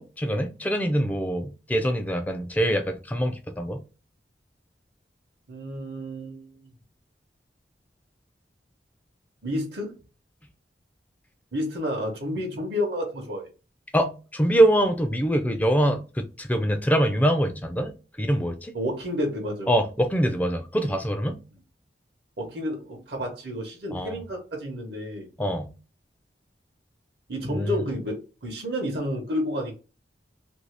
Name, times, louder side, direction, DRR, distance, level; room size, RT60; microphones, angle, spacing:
voice 1, 0.0-3.8 13.9-18.7 19.7-21.4 23.9-24.2 25.4-25.7 27.5-27.8, right 1 dB, 10° left, 0.4 m, -24 dB
voice 2, 5.5-6.7 9.4-9.9 11.5-13.5 18.7-19.7 22.4-25.3 27.3-29.7, equal, 65° right, 0.9 m, -30 dB
2.7 x 2.6 x 3.2 m
head